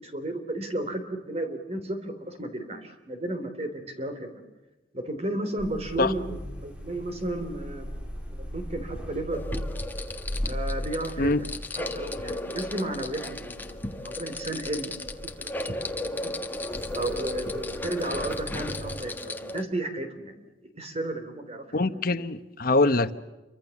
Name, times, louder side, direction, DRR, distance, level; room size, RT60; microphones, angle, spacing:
voice 1, 0.0-4.4 4.9-7.9 8.3-9.7 10.4-11.4 11.8-15.7 16.0-16.1 16.9-20.4 20.6-22.0, right 1 dB, 35° right, 3.5 m, -33 dB
sound 1, 5.6-19.0, equal, 5° right, 4.9 m, -39 dB
sound 2, 9.3-19.6, left 1 dB, 10° left, 1.5 m, -35 dB
voice 2, 21.7-23.1, left 2 dB, 55° left, 1.1 m, -23 dB
28.5 x 24.5 x 7.2 m
head